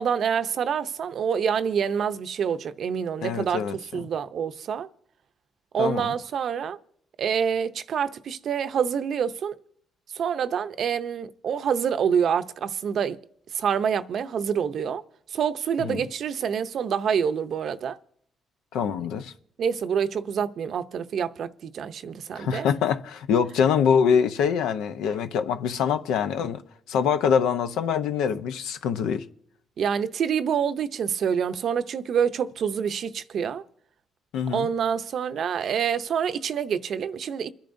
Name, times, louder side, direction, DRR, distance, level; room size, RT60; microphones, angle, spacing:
voice 1, 0.0-3.6 3.9-4.9 5.7-6.8 7.2-9.5 10.1-13.2 13.5-15.0 15.3-18.0 19.6-22.7 29.8-33.6 34.5-37.5, right 7 dB, 65° right, 0.6 m, -26 dB
voice 2, 3.2-4.0 5.8-6.1 15.9-16.0 18.7-19.3 22.3-26.6 26.9-29.2 34.3-34.7, left 7 dB, 90° left, 0.7 m, -24 dB
28.0 x 10.0 x 2.6 m
cardioid pair, 90°, 0 cm